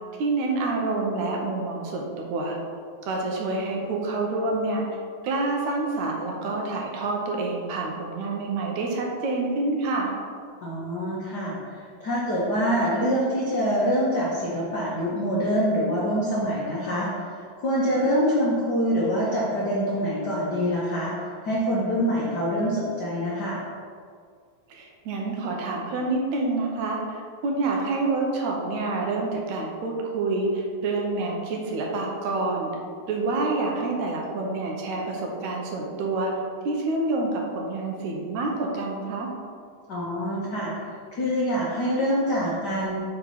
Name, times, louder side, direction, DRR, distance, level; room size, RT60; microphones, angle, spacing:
voice 1, 0.2-2.6 3.1-4.8 5.2-10.2 24.7-32.7 33.1-36.3 36.6-39.3, right 3 dB, 75° right, -1 dB, 2.2 m, -27 dB
voice 2, 10.6-23.6 39.9-40.7 41.2-43.0, equal, 70° left, -6 dB, 1.0 m, -25 dB
5.6 x 4.4 x 5.6 m, 2.1 s
omnidirectional pair, 3.5 m